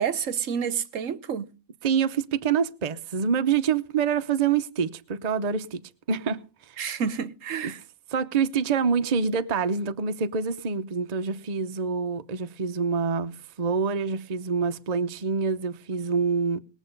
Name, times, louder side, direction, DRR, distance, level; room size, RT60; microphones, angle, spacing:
voice 1, 0.0-1.5 6.8-7.8, right 7 dB, 65° right, 1.2 m, -29 dB
voice 2, 1.8-5.8 6.1-6.8 7.6-7.7 8.1-16.6, right 6 dB, 35° right, 0.8 m, -26 dB
20.5 x 7.3 x 5.2 m
omnidirectional pair, 1.5 m